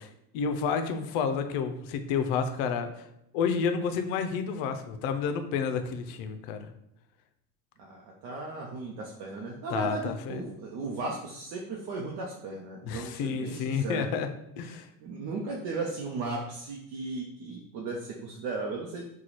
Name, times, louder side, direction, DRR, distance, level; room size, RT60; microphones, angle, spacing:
voice 1, 0.0-3.0 3.3-6.6 9.7-10.4 12.8-14.3 14.6-14.9, left 6 dB, 70° left, 8 dB, 0.5 m, -30 dB
voice 2, 7.8-14.0 15.0-19.0, right 3 dB, 65° right, -2 dB, 0.7 m, -36 dB
3.0 x 2.3 x 4.0 m, 0.77 s
cardioid pair, 125°, 36 cm